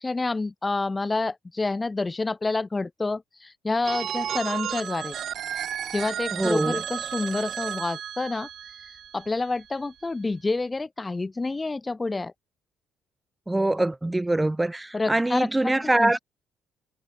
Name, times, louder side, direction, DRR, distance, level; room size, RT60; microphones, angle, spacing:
voice 1, 0.0-5.2 5.9-8.5 8.8-12.3 14.9-16.2, left 3 dB, 15° left, 4.1 m, -28 dB
Telephone, 3.8-9.6, right 9 dB, 55° right, 1.5 m, -33 dB
voice 2, 6.3-6.8 13.5-16.2, right 2 dB, 10° right, 3.2 m, -24 dB
cardioid pair, 135°, 0 cm